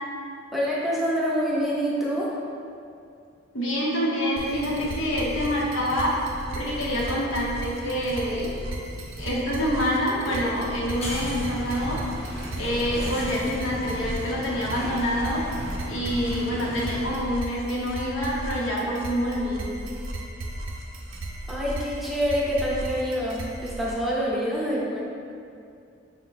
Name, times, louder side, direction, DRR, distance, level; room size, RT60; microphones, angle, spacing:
voice 1, 0.5-2.4 21.5-25.1, equal, ahead, -6 dB, 0.5 m, -26 dB
voice 2, 3.5-6.2 6.5-8.5 9.2-12.0 12.6-15.4 15.8-19.7, equal, 90° left, -4 dB, 0.9 m, -26 dB
sound 1, 4.4-23.9, right 1 dB, 80° right, 0.5 m, -36 dB
sound 2, 10.9-17.1, equal, 30° left, 0.8 m, -36 dB
5.1 x 2.1 x 3.9 m, 2.4 s
head